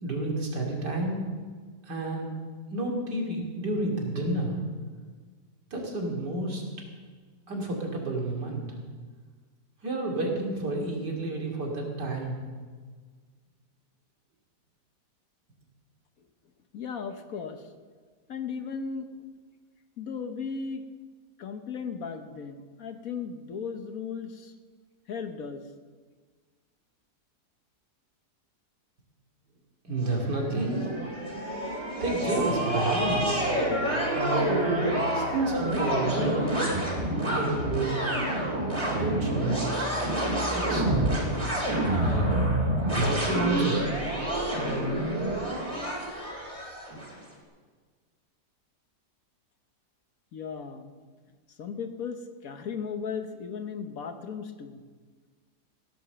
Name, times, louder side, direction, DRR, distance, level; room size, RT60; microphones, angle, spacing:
voice 1, 0.0-1.2 1.9-2.3 2.7-4.6 5.7-6.6 7.5-8.6 9.8-12.4 29.8-30.9 32.0-33.5 34.1-34.7 35.1-36.5 37.2-38.1 38.9-39.7 40.5-41.2 41.9-42.4 42.8-43.8, right 2 dB, 80° right, 0 dB, 3.3 m, -30 dB
voice 2, 16.7-17.7 18.3-19.1 20.0-20.8 21.4-24.5 25.1-25.6 50.3-50.9 51.6-54.8, left 6 dB, 60° left, 7 dB, 1.3 m, -36 dB
sound 1, 30.1-47.1, right 1 dB, 20° right, 3.4 m, -28 dB
15.5 x 9.4 x 6.9 m, 1.5 s
omnidirectional pair, 1.8 m